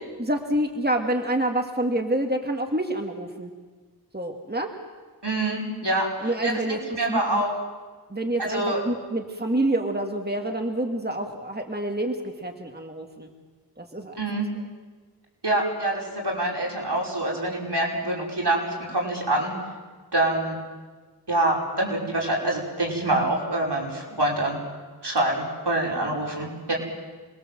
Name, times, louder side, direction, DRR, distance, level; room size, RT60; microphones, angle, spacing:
voice 1, 0.2-3.5 4.1-4.7 6.2-6.8 7.1-7.4 8.1-13.3 13.8-14.2 14.6-14.7 25.2-25.3 25.8-26.0, right 1 dB, 25° right, 3 dB, 2.2 m, -27 dB
voice 2, 5.2-7.5 8.4-8.8 14.2-14.5 15.4-19.5 20.1-20.6 21.3-24.6 25.0-26.7, right 1 dB, 75° right, -3 dB, 5.8 m, -26 dB
27.0 x 21.5 x 7.7 m, 1.4 s
wide cardioid pair, 45°, 40 cm